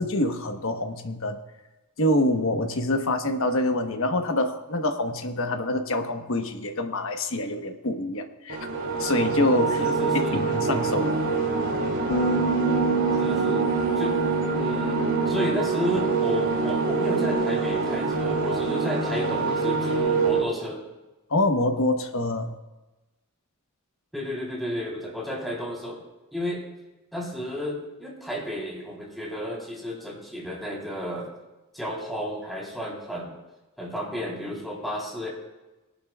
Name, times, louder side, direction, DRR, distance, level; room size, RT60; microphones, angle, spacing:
voice 1, 0.0-1.4 2.0-8.6 9.0-9.8 10.1-11.1 21.3-22.5, left 1 dB, 65° left, 5 dB, 1.2 m, -26 dB
sound 1, 8.5-20.4, right 4 dB, 65° right, 2.5 m, -25 dB
voice 2, 9.8-10.4 13.2-13.7 14.0-14.2 14.5-20.8 24.1-26.0 26.3-26.7 27.1-31.3 31.7-33.3 33.8-35.3, equal, ahead, -4 dB, 3.5 m, -32 dB
sound 2, 12.1-18.4, right 3 dB, 45° left, 0.5 m, -31 dB
21.5 x 11.5 x 2.4 m, 1.1 s
head